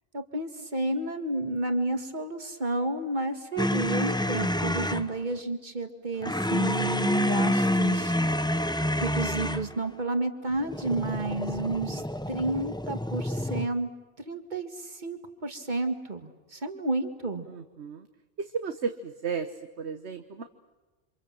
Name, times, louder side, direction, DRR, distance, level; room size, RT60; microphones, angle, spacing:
voice 1, 0.1-8.2 9.0-12.0 12.3-13.9 14.2-17.5, right 2 dB, 40° right, 7 dB, 2.3 m, -31 dB
sound 1, 3.6-5.1 6.2-9.7 10.6-13.7, left 1 dB, 5° left, 0.8 m, -28 dB
voice 2, 17.5-18.1 18.4-20.4, right 6 dB, 70° right, 7 dB, 1.4 m, -34 dB
28.5 x 26.5 x 7.6 m, 1.2 s
omnidirectional pair, 1.2 m